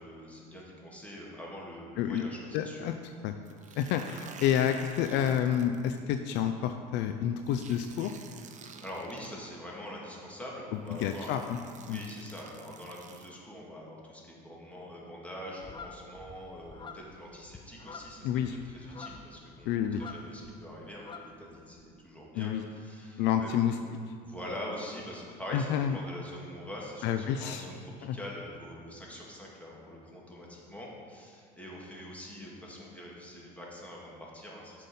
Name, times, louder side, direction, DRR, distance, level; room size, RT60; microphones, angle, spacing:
voice 1, 0.0-2.9 3.7-3.8 8.7-11.5 11.9-18.3 18.7-21.0 21.4-23.5 24.2-34.8, equal, 5° left, -4 dB, 2.3 m, -44 dB
voice 2, 2.5-3.3 3.8-8.1 11.0-11.6 11.9-12.0 18.2-18.6 19.7-20.0 22.3-22.6 23.2-23.7 25.5-26.0 27.0-27.6 28.0-28.2, left 9 dB, 60° left, 7 dB, 0.5 m, -29 dB
sound 1, 3.5-6.0 7.5-9.3 10.3-10.4 10.9-13.3, right 6 dB, 40° right, 0.7 m, -50 dB
sound 2, 15.6-20.6 20.8-21.8, left 5 dB, 25° left, 0.7 m, -48 dB
7.5 x 5.5 x 5.4 m, 2.2 s
hypercardioid pair, 75°, 20 cm